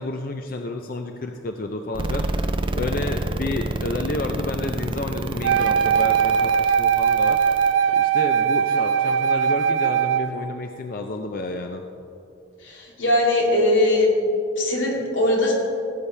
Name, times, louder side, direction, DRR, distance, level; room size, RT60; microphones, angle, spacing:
voice 1, 0.0-7.4 7.9-11.8, left 2 dB, 50° left, 4 dB, 0.5 m, -30 dB
sound 1, 1.9-7.7, right 2 dB, 25° right, 0.5 m, -28 dB
Wind instrument woodwind instrument, 5.4-10.3, right 7 dB, 90° right, 0.5 m, -20 dB
voice 2, 12.6-14.1 14.6-15.5, left 1 dB, 90° left, -3 dB, 2.7 m, -20 dB
17.5 x 8.5 x 3.3 m, 2.7 s
head